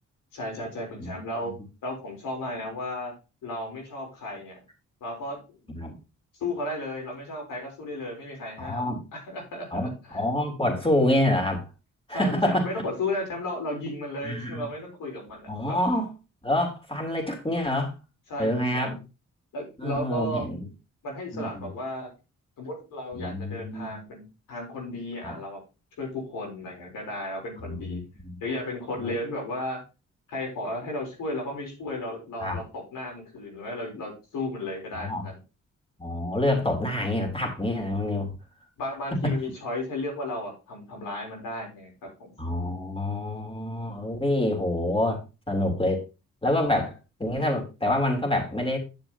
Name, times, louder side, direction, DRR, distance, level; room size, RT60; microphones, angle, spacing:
voice 1, 0.3-1.5 1.8-3.1 3.4-4.6 5.0-5.6 6.4-10.2 12.1-15.8 18.3-19.0 19.5-20.4 21.0-22.1 22.6-25.6 26.0-28.0 28.4-29.8 30.3-35.4 38.8-42.3, left 1 dB, 90° left, 0 dB, 4.0 m, -34 dB
voice 2, 8.6-9.0 9.7-11.7 12.1-12.7 14.2-14.7 15.5-16.1 16.4-17.9 18.4-18.9 19.8-20.6 21.3-21.7 23.1-24.0 25.2-25.4 27.6-28.3 29.0-29.1 32.4-32.6 35.0-35.2 36.0-38.3 39.1-39.3 42.4-45.2 45.5-46.0 46.4-48.8, left 1 dB, 15° left, 2 dB, 3.4 m, -27 dB
10.5 x 7.5 x 3.0 m, 0.30 s
cardioid pair, 65°, 32 cm